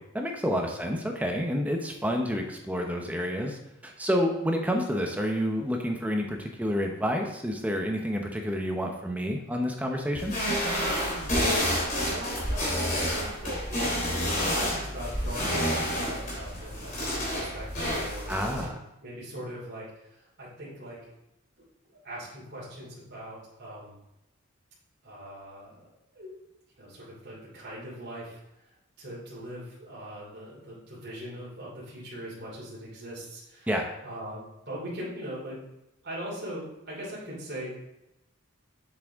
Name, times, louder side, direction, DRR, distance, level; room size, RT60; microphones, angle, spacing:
voice 1, 0.0-10.3 18.3-18.8 33.7-33.9, equal, 5° right, 2 dB, 0.7 m, -29 dB
sound 1, 10.1-18.6, equal, 40° left, 3.2 m, -29 dB
voice 2, 11.0-11.6 12.1-18.7 19.0-21.1 21.9-24.0 25.0-26.4 26.8-28.4 28.7-33.7 34.0-35.6 36.0-37.8, equal, 50° right, -7 dB, 3.1 m, -41 dB
7.5 x 7.5 x 3.5 m, 0.88 s
head